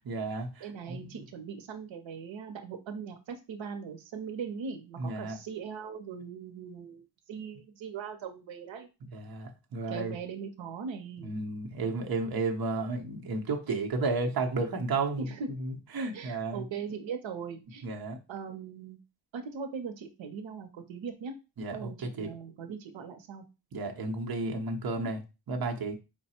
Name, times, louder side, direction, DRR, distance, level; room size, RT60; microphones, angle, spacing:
voice 1, 0.1-1.2 5.0-5.4 9.0-10.1 11.2-15.3 15.6-16.6 17.8-18.2 21.6-22.3 23.7-26.0, right 3 dB, 55° right, 2 dB, 0.8 m, -33 dB
voice 2, 0.6-8.9 9.9-11.3 15.2-15.5 16.1-17.8 18.3-19.0 19.3-21.3 21.7-23.5, right 6 dB, 90° right, 6 dB, 0.7 m, -40 dB
4.8 x 2.2 x 4.2 m, 0.29 s
wide cardioid pair, 145°, 45 cm